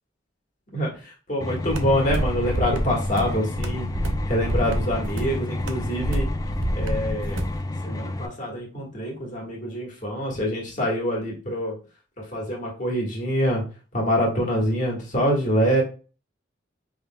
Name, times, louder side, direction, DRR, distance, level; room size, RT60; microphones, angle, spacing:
voice 1, 1.3-3.9 4.3-6.3 6.7-7.4 7.8-11.7 12.2-13.6 13.9-15.8, equal, 40° left, -2 dB, 1.5 m, -25 dB
sound 1, 1.4-8.3, left 2 dB, 20° left, 0.4 m, -31 dB
sound 2, 1.7-7.6, equal, 80° right, 0.7 m, -28 dB
5.3 x 3.7 x 2.2 m, 0.36 s
head